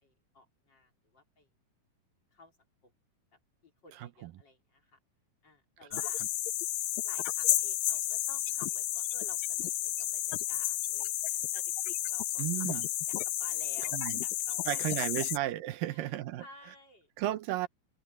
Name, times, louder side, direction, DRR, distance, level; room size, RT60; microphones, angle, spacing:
voice 1, 0.0-1.5 2.3-2.5 2.8-2.9 3.6-5.0 5.4-6.2 7.0-9.7 10.0-15.0 15.8-16.1 16.4-17.1, left 2 dB, 30° left, 4.0 m, -55 dB
voice 2, 3.9-4.3 5.9-6.3 12.4-12.9 13.9-14.2 14.7-16.5 17.2-17.7, right 15 dB, 80° right, 2.5 m, -34 dB
sound 1, 5.9-15.4, left 14 dB, 85° left, 2.7 m, -32 dB
omnidirectional pair, 4.0 m